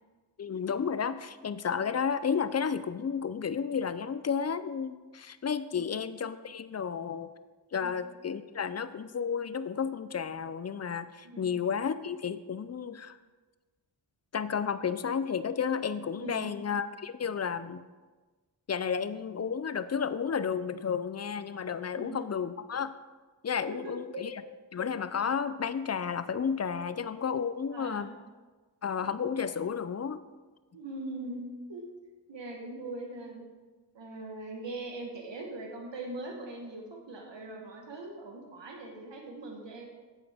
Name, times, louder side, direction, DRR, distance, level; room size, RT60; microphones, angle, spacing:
voice 1, 0.4-7.3 7.7-13.2 14.3-17.8 18.7-22.9 23.4-24.3 24.7-28.2 28.8-30.2, left 6 dB, 40° left, 13 dB, 0.5 m, -32 dB
voice 2, 11.2-11.6 16.2-16.5 21.9-22.3 23.6-24.2 27.7-28.1 30.7-31.8 32.3-33.5 33.9-39.9, right 2 dB, 85° right, 1 dB, 1.2 m, -41 dB
8.3 x 7.1 x 3.5 m, 1.3 s
cardioid pair, 45°, 43 cm